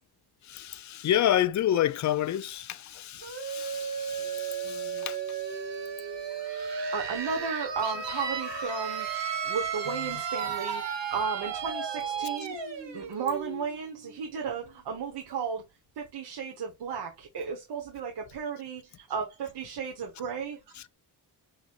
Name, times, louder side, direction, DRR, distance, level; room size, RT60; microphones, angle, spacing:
voice 1, 0.4-5.5, left 11 dB, 45° left, 0.5 m, -29 dB
sound 1, 3.2-14.7, right 6 dB, 85° right, 2.0 m, -34 dB
voice 2, 4.6-5.1 6.9-9.1 9.4-12.6 12.9-15.6 15.9-20.7, right 6 dB, 65° right, 1.2 m, -34 dB
6.3 x 3.1 x 2.4 m
wide cardioid pair, 175°, 42 cm